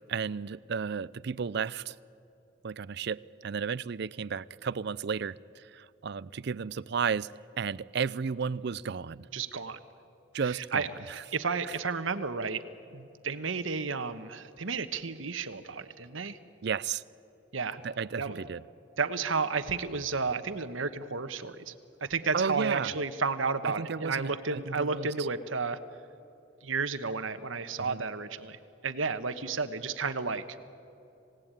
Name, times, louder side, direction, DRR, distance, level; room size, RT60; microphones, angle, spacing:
voice 1, 0.1-2.0 2.6-9.3 10.3-11.2 11.6-11.7 16.6-17.0 17.8-18.6 22.3-22.9 23.6-25.1 27.8-28.1, right 6 dB, 55° right, 19 dB, 0.5 m, -33 dB
voice 2, 9.3-9.8 10.5-12.6 12.9-16.4 17.5-17.8 18.2-18.4 19.0-21.7 22.1-25.8 26.6-28.6 28.8-30.4, right 4 dB, 80° right, 11 dB, 1.2 m, -32 dB
27.0 x 17.5 x 9.0 m, 2.9 s
head